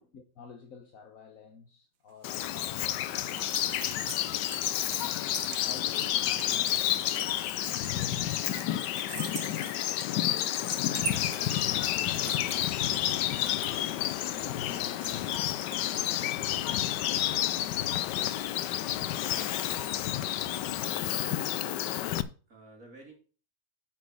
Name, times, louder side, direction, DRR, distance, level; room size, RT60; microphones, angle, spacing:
voice 1, 0.1-4.1 4.8-7.4 7.8-9.9 10.3-12.3 12.9-15.7, left 6 dB, 55° left, 1.4 m, -51 dB
sound 1, 2.1-16.3, right 8 dB, 80° right, 1.6 m, -44 dB
Bird vocalization bird call bird song, 2.2-22.2, left 12 dB, 90° left, 1.3 m, -30 dB
voice 2, 19.2-20.1 22.5-23.1, right 2 dB, 50° right, 2.7 m, -52 dB
8.2 x 6.3 x 6.3 m
omnidirectional pair, 1.8 m